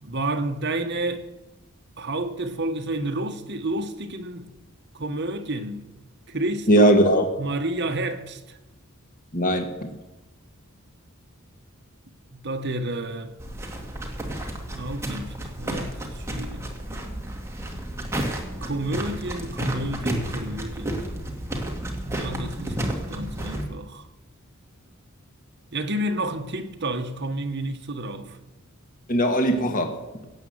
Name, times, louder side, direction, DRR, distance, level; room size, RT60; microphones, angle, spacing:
voice 1, 0.0-1.3 2.0-4.5 4.9-5.8 6.3-6.9 7.4-8.6 12.3-13.4 14.7-16.7 18.6-21.1 22.1-24.0 25.7-28.4, right 1 dB, 55° right, 1.3 m, -30 dB
voice 2, 6.7-7.3 9.3-9.9 29.1-30.2, right 1 dB, 40° left, 1.5 m, -20 dB
sound 1, 13.4-23.7, right 1 dB, 15° right, 2.1 m, -31 dB
16.5 x 8.4 x 7.9 m
head